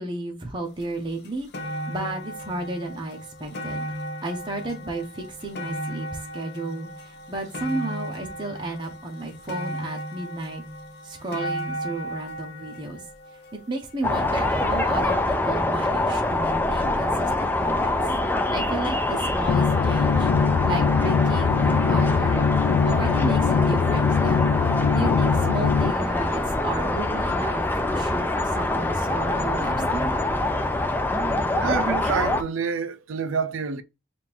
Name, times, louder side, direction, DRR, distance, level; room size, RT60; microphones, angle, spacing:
voice 1, 0.0-1.5 1.9-3.9 4.2-6.1 6.3-10.6 11.0-13.0 13.5-17.9 18.5-20.3 20.6-22.5 22.8-24.5 24.9-30.2, right 2 dB, 25° right, 0.7 m, -33 dB
sound 1, 0.8-0.9 1.2-14.4 15.2-15.3, equal, 55° left, 0.7 m, -35 dB
sound 2, 14.0-32.4, left 2 dB, 10° left, 0.4 m, -25 dB
sound 3, 19.5-25.9, left 6 dB, 85° left, 0.3 m, -22 dB
voice 2, 31.5-33.8, right 6 dB, 80° right, 0.5 m, -27 dB
3.6 x 2.5 x 4.4 m
head